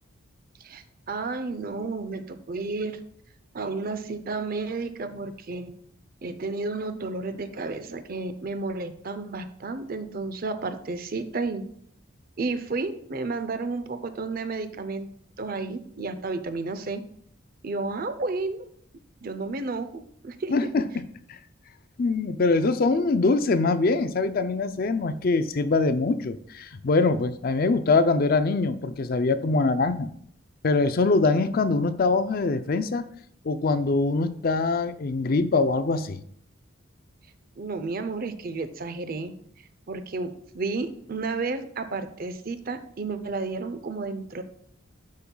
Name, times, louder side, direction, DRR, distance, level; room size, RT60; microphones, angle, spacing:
voice 1, 0.6-3.0 3.5-5.7 6.2-11.6 12.4-15.1 15.4-17.0 17.6-18.6 19.2-20.7 37.6-39.3 39.9-40.3 40.5-44.4, right 3 dB, 45° right, 10 dB, 0.5 m, -32 dB
voice 2, 20.5-21.0 21.3-21.4 22.0-30.1 30.6-33.0 33.4-36.2, left 3 dB, 45° left, 12 dB, 0.4 m, -23 dB
11.5 x 5.3 x 2.3 m, 0.66 s
head